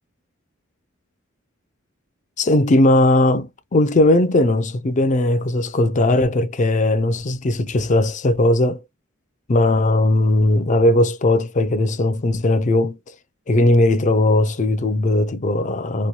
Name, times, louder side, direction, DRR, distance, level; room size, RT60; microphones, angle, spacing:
voice 1, 2.4-8.8 9.5-13.0 13.5-16.1, left 1 dB, 35° left, 0.5 m, -18 dB
3.0 x 2.2 x 2.7 m
head